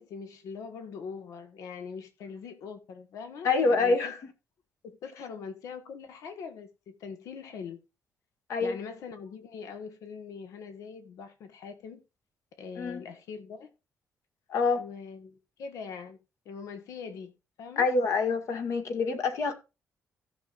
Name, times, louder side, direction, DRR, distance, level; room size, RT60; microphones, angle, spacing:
voice 1, 0.0-4.2 4.8-7.8 8.6-12.0 12.6-13.7 14.8-16.2 16.4-17.3 17.6-17.9, left 6 dB, 85° left, 1.6 m, -42 dB
voice 2, 3.4-4.2 8.5-8.7 12.8-13.0 14.5-14.8 17.8-19.5, left 4 dB, 65° left, 1.9 m, -26 dB
16.0 x 6.6 x 2.5 m
cardioid pair, 150°, 6 cm